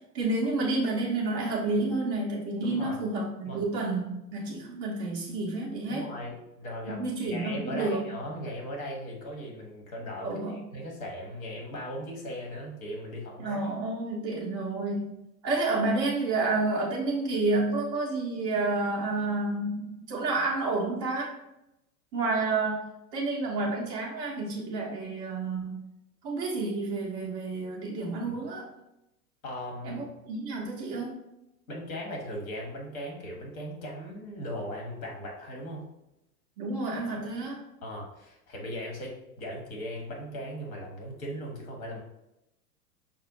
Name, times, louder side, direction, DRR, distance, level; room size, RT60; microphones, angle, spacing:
voice 1, 0.1-6.1 6.8-8.0 10.2-10.6 13.4-15.2 15.4-21.3 22.1-22.8 23.1-25.8 26.2-28.6 29.8-31.2 36.6-37.6, right 3 dB, 10° right, -4 dB, 0.3 m, -30 dB
voice 2, 2.6-3.0 3.5-3.6 5.9-7.0 7.3-13.6 29.4-30.1 31.7-35.8 37.1-37.3 37.8-42.0, equal, 60° left, -1 dB, 1.5 m, -38 dB
5.6 x 2.4 x 3.6 m, 0.88 s
figure-of-eight pair, 95°, 48 cm